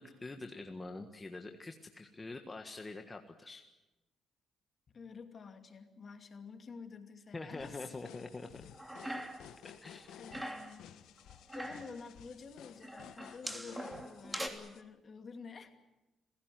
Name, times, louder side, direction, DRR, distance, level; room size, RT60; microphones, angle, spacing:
voice 1, 0.0-3.6 7.3-8.6 9.6-10.2, left 3 dB, 25° left, 5 dB, 1.6 m, -45 dB
voice 2, 4.9-8.0 10.2-10.9 11.5-15.7, left 5 dB, 45° left, 6 dB, 2.6 m, -50 dB
sound 1, 7.6-14.8, left 10 dB, 85° left, 1.4 m, -55 dB
sound 2, 8.7-9.6 9.9-10.8 11.3-12.0 12.8-14.5, right 1 dB, 10° right, 3.1 m, -42 dB
27.0 x 16.5 x 9.3 m, 1.1 s
cardioid pair, 90°, 0 cm